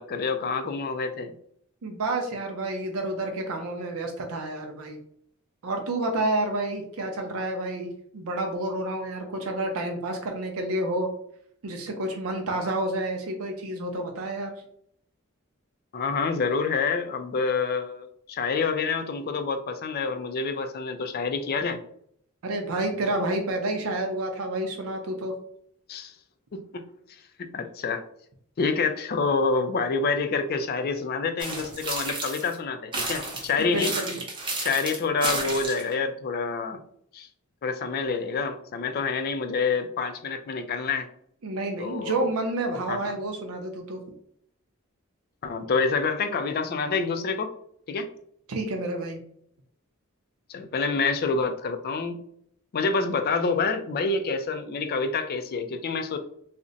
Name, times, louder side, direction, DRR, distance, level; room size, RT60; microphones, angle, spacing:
voice 1, 0.0-1.3 15.9-21.8 25.9-26.1 26.5-26.8 27.4-28.0 28.6-33.9 34.6-36.8 37.1-37.3 37.6-41.1 41.8-42.2 42.9-43.0 45.4-47.5 47.9-48.1 50.5-52.2 52.7-56.2, left 4 dB, 45° left, 7 dB, 0.4 m, -27 dB
voice 2, 1.8-5.0 5.6-11.1 11.6-14.5 22.4-25.3 33.6-34.2 41.4-44.0 48.5-49.2, right 2 dB, 80° right, 3 dB, 0.5 m, -29 dB
sound 1, 31.4-32.5 32.9-35.9, right 2 dB, 25° right, 0.7 m, -31 dB
2.5 x 2.1 x 3.8 m, 0.67 s
head